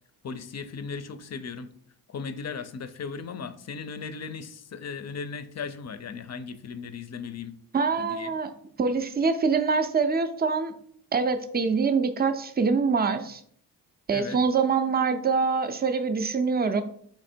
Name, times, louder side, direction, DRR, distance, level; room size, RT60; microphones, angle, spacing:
voice 1, 0.2-1.7 2.1-7.6 8.0-8.3 14.1-14.4, left 5 dB, 40° left, 12 dB, 0.4 m, -37 dB
voice 2, 7.7-8.5 8.8-10.7 11.1-13.4 14.1-16.8, right 5 dB, 25° right, 9 dB, 0.4 m, -24 dB
4.2 x 2.9 x 4.3 m, 0.63 s
cardioid pair, 95°, 41 cm